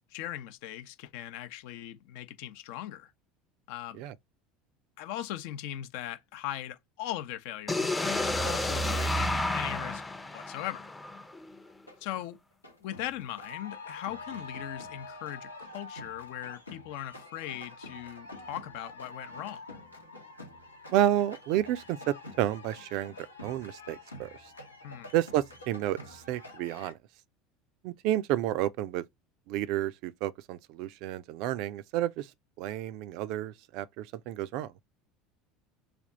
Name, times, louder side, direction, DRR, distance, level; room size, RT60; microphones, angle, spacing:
voice 1, 0.1-3.1 3.7-4.1 5.0-10.0 10.3-10.9 12.0-12.4 12.8-19.6 24.8-25.1, left 12 dB, 60° left, 0.6 m, -39 dB
sound 1, 7.7-11.6, left 1 dB, 10° left, 0.6 m, -31 dB
sound 2, 11.7-12.3 12.6-26.9, left 2 dB, 90° left, 0.9 m, -46 dB
voice 2, 20.9-23.1 23.4-24.3 25.1-27.0 27.8-29.0 29.5-32.3 32.6-34.7, right 13 dB, 55° right, 0.3 m, -30 dB
3.4 x 2.4 x 3.9 m
figure-of-eight pair, 70°, 0 cm